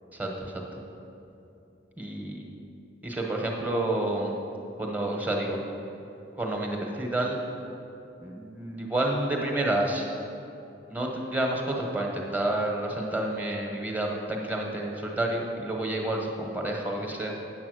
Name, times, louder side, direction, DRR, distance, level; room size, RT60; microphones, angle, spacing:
voice 1, 0.2-0.6 2.0-2.4 3.0-4.3 4.8-5.6 6.4-7.4 8.2-10.1 10.9-17.3, right 1 dB, 10° right, 0 dB, 1.0 m, -29 dB
8.6 x 7.1 x 6.3 m, 2.8 s
head